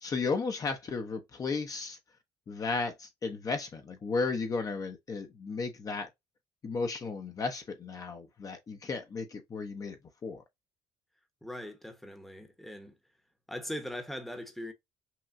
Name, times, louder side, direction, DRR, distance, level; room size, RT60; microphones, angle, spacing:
voice 1, 0.0-2.0 2.5-6.1 6.6-10.0 10.2-10.4, left 4 dB, 35° left, 0.8 m, -34 dB
voice 2, 11.4-12.9 13.5-14.7, left 1 dB, ahead, 0.9 m, -40 dB
5.8 x 2.3 x 2.5 m
cardioid pair, 110°, 11 cm